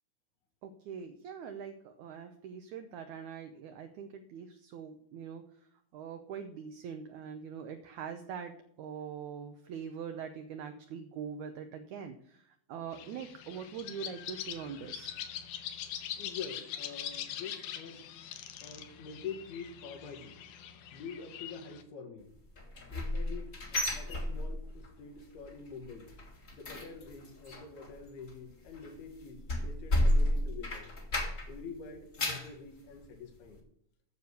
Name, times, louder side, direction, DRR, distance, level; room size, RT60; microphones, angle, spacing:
voice 1, 0.6-5.4 5.9-15.1, right 7 dB, 80° right, 7 dB, 1.7 m, -43 dB
sound 1, 12.9-21.8, left 10 dB, 70° left, 2.0 m, -43 dB
voice 2, 16.2-18.1 18.6-20.4 20.9-22.3 22.9-26.1 26.5-30.9 31.5-33.6, left 5 dB, 90° left, 3 dB, 3.6 m, -46 dB
sound 2, 22.6-24.9 25.2-25.5 25.8-31.6 31.9-32.6 33.0-33.1 33.6-33.7, left 1 dB, 40° left, 1.2 m, -32 dB
9.4 x 6.9 x 6.3 m, 0.70 s
omnidirectional pair, 4.3 m